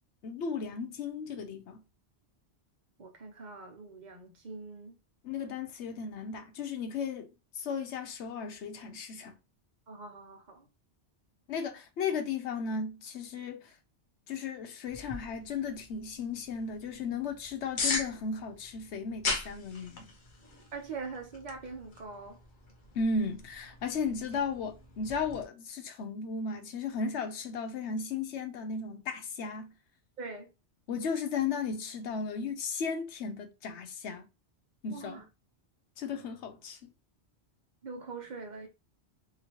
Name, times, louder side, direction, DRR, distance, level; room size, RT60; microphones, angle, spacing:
voice 1, 0.2-1.8 5.2-9.3 11.5-13.7 14.3-20.1 22.9-29.7 30.9-34.3 34.8-35.2 36.0-36.9, left 5 dB, 85° left, 1.0 m, -35 dB
voice 2, 3.0-5.0 9.9-10.7 20.7-22.4 30.2-30.5 34.9-35.2 36.2-36.3 37.8-38.7, right 4 dB, 45° right, 1.0 m, -43 dB
sound 1, 14.9-25.4, left 3 dB, 50° left, 0.9 m, -40 dB
3.0 x 2.8 x 2.9 m
omnidirectional pair, 1.1 m